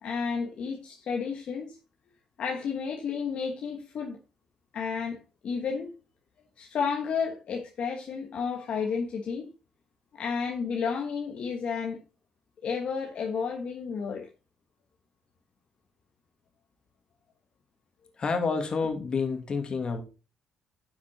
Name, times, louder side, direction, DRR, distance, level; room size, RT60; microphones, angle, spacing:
voice 1, 0.0-1.8 2.4-4.2 4.7-5.2 5.4-5.9 6.6-9.5 10.1-12.0 12.6-14.3, left 6 dB, 65° left, 1.4 m, -31 dB
voice 2, 18.2-20.0, left 4 dB, 45° left, 2.5 m, -29 dB
10.5 x 6.0 x 4.1 m
supercardioid pair, 60°, 2 cm